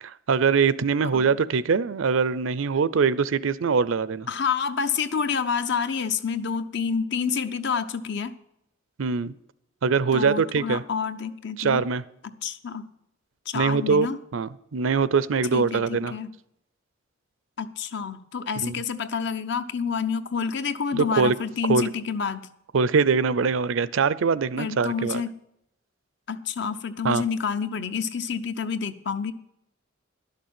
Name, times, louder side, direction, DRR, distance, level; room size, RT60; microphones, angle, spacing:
voice 1, 0.0-4.3 9.0-9.3 9.8-10.8 11.6-12.0 13.5-14.1 14.3-16.1 18.6-18.7 20.9-21.3 21.7-21.8 22.7-25.2 27.0-27.2, right 5 dB, 75° right, 0.5 m, -23 dB
voice 2, 4.3-8.3 10.1-11.8 12.2-12.9 13.5-14.2 15.5-16.3 17.6-22.5 24.6-25.3 26.3-29.3, left 6 dB, 60° left, 0.7 m, -28 dB
11.5 x 6.6 x 7.6 m
head